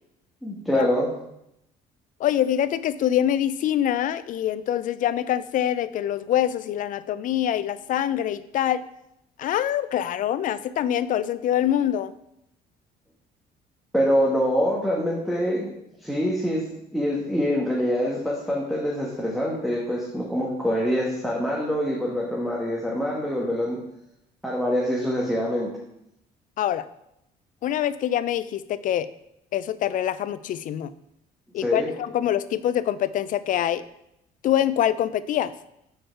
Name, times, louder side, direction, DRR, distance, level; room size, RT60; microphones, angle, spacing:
voice 1, 0.4-1.1 13.9-15.7 16.0-23.8 24.4-25.7 31.5-31.9, equal, ahead, -4 dB, 1.3 m, -25 dB
voice 2, 2.2-8.8 9.4-12.1 26.6-26.9 27.6-29.1 29.5-30.9 31.5-33.8 34.4-35.5, left 11 dB, 50° left, 15 dB, 0.4 m, -25 dB
6.4 x 4.7 x 4.5 m, 0.81 s
cardioid pair, 110°, 17 cm